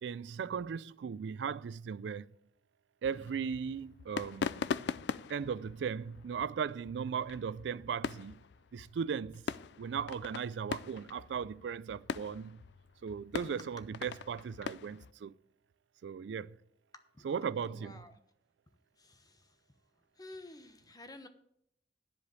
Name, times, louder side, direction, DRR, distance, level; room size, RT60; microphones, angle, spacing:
voice 1, 0.0-2.3 3.0-4.8 5.3-8.4 8.7-9.4 9.8-12.6 13.0-15.4 16.0-16.6 17.2-18.0, right 6 dB, 75° right, 0.3 m, -37 dB
sound 1, 3.0-15.1, left 6 dB, 70° left, 0.4 m, -42 dB
voice 2, 17.1-18.1 19.0-19.6 20.2-21.3, left 2 dB, 20° left, 1.1 m, -52 dB
11.0 x 5.0 x 8.2 m
head